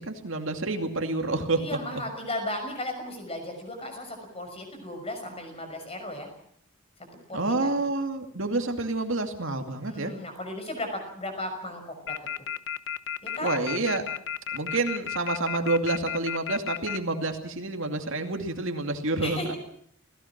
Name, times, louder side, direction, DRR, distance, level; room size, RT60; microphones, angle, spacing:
voice 1, 0.0-1.6 7.3-10.1 13.4-14.0 14.5-19.5, right 2 dB, 60° right, 5 dB, 2.5 m, -28 dB
voice 2, 1.5-6.3 7.3-7.9 9.9-12.5 13.2-13.6 19.2-19.6, left 1 dB, 25° left, 5 dB, 6.0 m, -36 dB
sound 1, 12.1-17.0, left 9 dB, 50° left, 0.8 m, -32 dB
28.0 x 17.5 x 6.0 m, 0.67 s
head